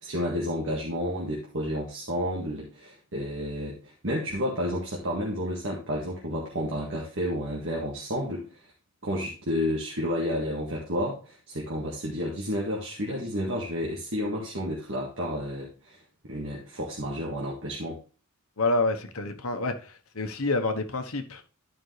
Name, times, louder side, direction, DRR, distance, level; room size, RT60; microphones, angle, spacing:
voice 1, 0.0-8.5 9.0-16.0 16.2-18.0, equal, 60° right, 1.9 m, -31 dB
voice 2, 18.6-21.4, left 2 dB, 70° left, 1.2 m, -28 dB
12.0 x 5.3 x 3.3 m
head